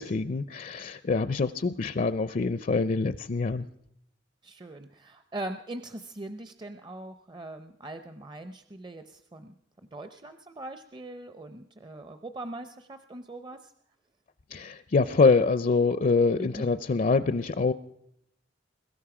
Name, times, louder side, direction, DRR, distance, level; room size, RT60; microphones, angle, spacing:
voice 1, 0.0-3.7 14.5-17.7, left 4 dB, 45° left, 14 dB, 0.5 m, -25 dB
voice 2, 4.4-9.5 9.9-13.7 16.4-16.7, right 1 dB, 25° right, 9 dB, 0.6 m, -41 dB
22.0 x 13.0 x 4.9 m, 0.77 s
head